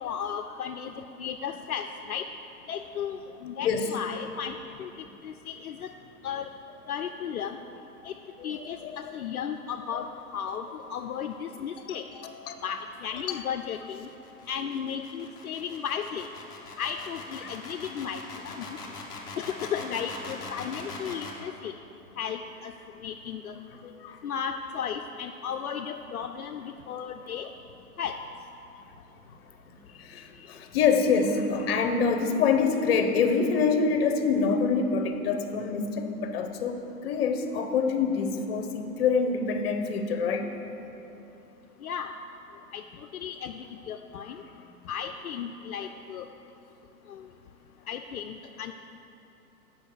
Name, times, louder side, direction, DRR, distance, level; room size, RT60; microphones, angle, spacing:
voice 1, 0.0-2.3 2.7-4.5 4.8-4.9 5.2-5.9 6.2-6.5 6.9-7.6 8.0-8.1 8.4-12.0 12.6-14.1 14.5-16.3 16.8-18.6 19.4-21.7 22.2-22.7 23.0-23.6 24.2-27.5 28.0-28.2 41.8-42.1 42.7-42.8 43.1-44.4 44.9-46.3 47.1-47.3 47.9-48.7, left 7 dB, 70° left, 6 dB, 0.5 m, -35 dB
voice 2, 8.4-9.0 9.9-10.0 12.1-12.6 13.3-13.4 23.8-24.2 30.0-40.5, left 5 dB, 40° left, 7 dB, 0.8 m, -26 dB
sound 1, 12.1-21.4, left 3 dB, 10° left, 0.6 m, -42 dB
7.6 x 5.5 x 6.4 m, 2.9 s
figure-of-eight pair, 120°, 47 cm